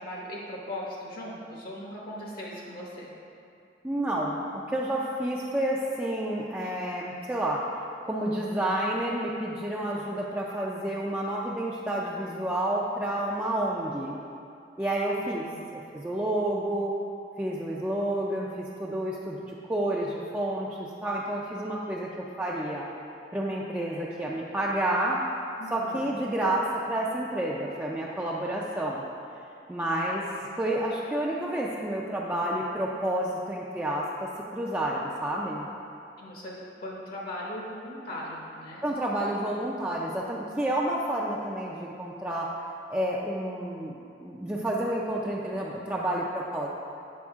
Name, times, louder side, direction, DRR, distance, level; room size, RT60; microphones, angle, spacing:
voice 1, 0.0-3.1 15.3-15.6 25.6-26.2 36.2-38.9 39.3-39.7, left 1 dB, 55° left, -3 dB, 0.9 m, -39 dB
voice 2, 3.8-7.6 8.0-14.2 14.8-15.4 15.7-16.9 17.4-22.9 23.3-25.2 25.7-29.0 29.7-30.3 30.6-35.7 38.8-42.5 42.9-46.7, right 1 dB, 10° right, -5 dB, 0.4 m, -30 dB
8.5 x 5.2 x 3.5 m, 2.6 s
head